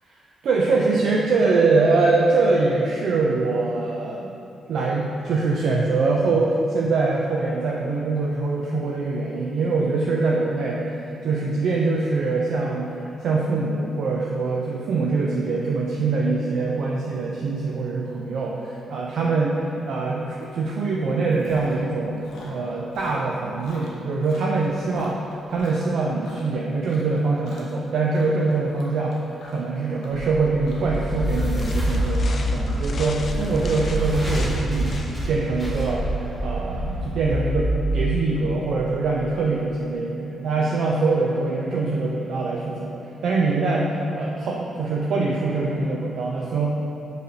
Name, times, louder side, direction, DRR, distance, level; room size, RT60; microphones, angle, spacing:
voice 1, 0.4-4.3 4.7-25.2 25.5-29.2 29.5-35.0 35.3-42.9 43.2-46.7, right 3 dB, 70° right, -3 dB, 0.3 m, -23 dB
Chewing mastication, 20.4-20.6 20.9-21.9 22.2-26.5 26.8-27.2 27.4-27.8 28.1-34.6, left 2 dB, 85° left, 0.6 m, -46 dB
sound 1, 30.2-39.3, equal, 10° left, 1.2 m, -26 dB
sound 2, 31.3-35.4, left 3 dB, 50° left, 0.3 m, -40 dB
4.6 x 3.2 x 2.7 m, 2.7 s
cardioid pair, 65°, 0 cm